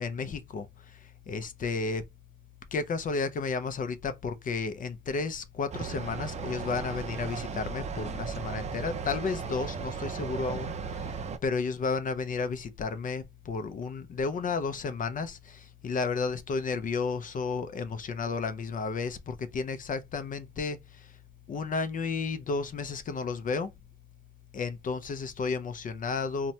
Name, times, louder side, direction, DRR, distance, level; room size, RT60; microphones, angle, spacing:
voice 1, 0.0-2.0 2.7-21.2 21.5-23.7 24.5-26.5, left 4 dB, 45° left, 0.5 m, -32 dB
sound 1, 5.7-11.4, right 5 dB, 35° right, 0.4 m, -36 dB
3.0 x 2.2 x 2.7 m
cardioid pair, 90°, 20 cm